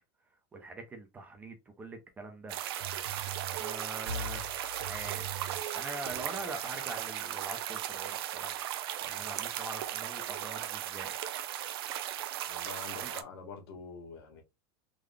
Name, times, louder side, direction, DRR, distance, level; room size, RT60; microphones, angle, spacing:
voice 1, 0.5-2.7 3.6-4.5 4.8-5.4 5.7-8.7 9.0-11.1 13.0-13.1, right 2 dB, 10° right, 0.6 m, -44 dB
sound 1, 2.5-13.2, right 12 dB, 75° right, 0.5 m, -37 dB
sound 2, 2.7-7.7, right 3 dB, 45° right, 1.2 m, -43 dB
voice 2, 12.5-14.4, left 5 dB, 80° left, 1.5 m, -46 dB
3.8 x 2.2 x 3.3 m
supercardioid pair, 160°, 13 cm